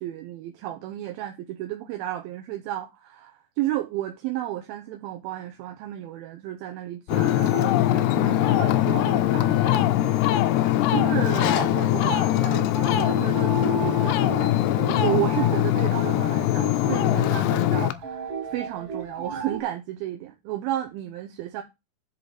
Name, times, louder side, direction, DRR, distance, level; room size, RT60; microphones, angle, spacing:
voice 1, 0.0-14.2 14.7-21.6, right 13 dB, 75° right, 2.5 m, -32 dB
Ocean, 7.1-17.9, left 13 dB, 85° left, 2.7 m, -22 dB
sound 1, 11.4-19.6, right 5 dB, 45° right, 2.3 m, -35 dB
10.5 x 3.8 x 6.3 m
omnidirectional pair, 4.6 m